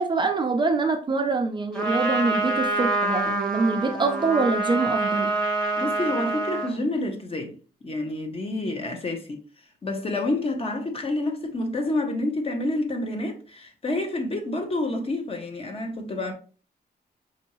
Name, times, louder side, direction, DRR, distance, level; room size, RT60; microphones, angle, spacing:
voice 1, 0.0-5.3, right 3 dB, 30° right, 0.4 m, -24 dB
Trumpet, 1.7-6.8, right 2 dB, 5° left, 0.9 m, -26 dB
voice 2, 5.5-7.6 7.8-9.4 9.8-16.3, left 2 dB, 35° left, 0.7 m, -28 dB
5.3 x 2.6 x 2.9 m
wide cardioid pair, 170°, 17 cm